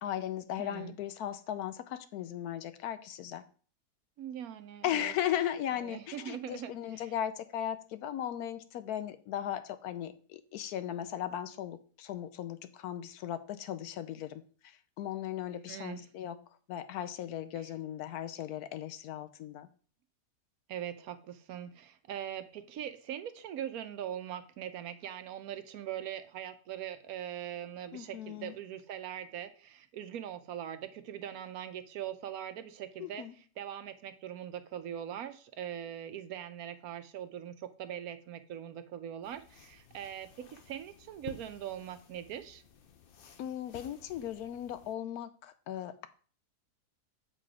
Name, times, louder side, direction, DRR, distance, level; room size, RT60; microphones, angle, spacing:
voice 1, 0.0-3.4 4.8-16.4 16.7-19.7 27.9-28.5 33.0-33.3 43.4-46.1, left 11 dB, 75° left, 12 dB, 1.0 m, -37 dB
voice 2, 0.6-0.9 4.2-5.1 5.8-7.1 15.7-16.0 20.7-33.2 33.6-42.6, right 10 dB, 70° right, 10 dB, 1.0 m, -41 dB
sound 1, 39.2-44.9, left 7 dB, 60° left, 0.6 m, -54 dB
7.6 x 3.8 x 4.8 m, 0.42 s
omnidirectional pair, 1.7 m